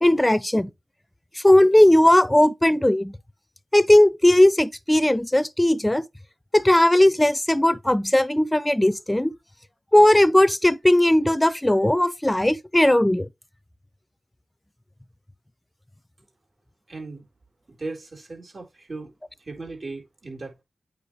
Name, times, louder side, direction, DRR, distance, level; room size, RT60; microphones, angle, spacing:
voice 1, 0.0-0.7 1.4-3.1 3.7-6.0 6.5-9.3 9.9-13.3, left 1 dB, 15° left, 0.6 m, -17 dB
voice 2, 16.9-17.3 17.7-19.1 19.4-20.6, right 3 dB, 55° right, 4.5 m, -37 dB
8.7 x 5.0 x 3.2 m
cardioid pair, 45°, 0 cm